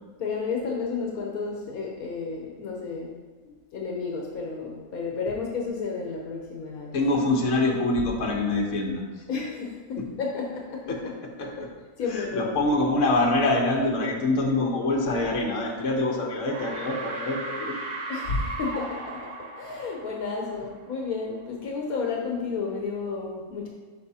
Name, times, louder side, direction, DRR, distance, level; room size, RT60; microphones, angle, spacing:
voice 1, 0.2-3.1 3.4-7.0 9.3-11.1 11.4-11.5 12.0-12.6 18.1-23.7, left 4 dB, 75° left, 0 dB, 1.3 m, -32 dB
voice 2, 6.9-9.0 10.0-10.1 10.9-11.0 11.4-11.7 12.1-17.7, left 2 dB, 60° left, 0 dB, 1.4 m, -25 dB
sound 1, 15.8-16.1 16.4-21.0, right 2 dB, 70° right, 1.5 m, -36 dB
11.5 x 4.8 x 2.8 m, 1.3 s
omnidirectional pair, 1.6 m